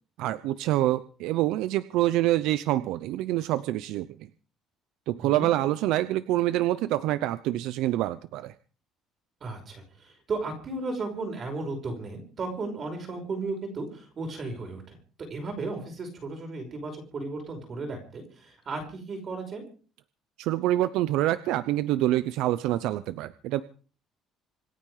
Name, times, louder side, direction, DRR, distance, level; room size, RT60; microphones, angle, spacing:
voice 1, 0.2-4.1 5.1-8.5 20.4-23.6, right 15 dB, 80° right, 14 dB, 0.7 m, -26 dB
voice 2, 9.4-19.6, right 3 dB, 35° right, 4 dB, 5.5 m, -35 dB
27.0 x 9.3 x 5.0 m, 0.40 s
cardioid pair, 135°, 0 cm